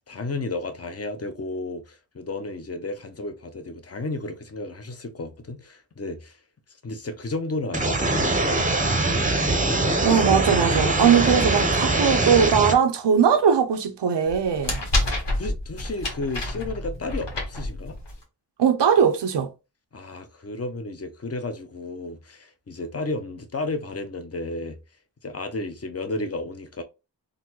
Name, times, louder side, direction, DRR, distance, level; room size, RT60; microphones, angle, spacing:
voice 1, 0.1-6.4 6.8-9.3 15.3-18.0 19.9-24.8 25.2-26.8, left 2 dB, 35° left, 0.7 m, -33 dB
sound 1, 7.7-12.7, right 2 dB, 20° right, 0.6 m, -22 dB
voice 2, 10.0-14.8 18.6-19.5, right 7 dB, 80° right, 0.6 m, -20 dB
sound 2, 14.3-18.2, left 1 dB, 85° left, 1.1 m, -28 dB
3.8 x 2.1 x 2.9 m
wide cardioid pair, 50°, 42 cm